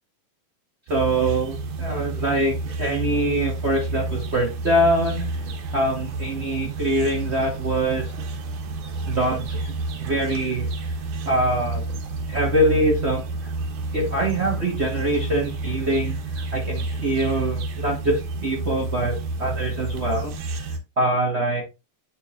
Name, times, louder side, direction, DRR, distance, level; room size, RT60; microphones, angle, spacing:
voice 1, 0.9-5.4 5.7-8.1 9.1-9.6 10.0-10.7 11.2-11.8 12.3-13.2 13.9-16.2 16.5-20.3 21.0-21.6, right 1 dB, 55° right, 0 dB, 0.7 m, -24 dB
sound 1, 0.9-20.8, right 2 dB, 80° right, 2.7 m, -30 dB
9.5 x 5.3 x 2.5 m, 0.26 s
omnidirectional pair, 3.5 m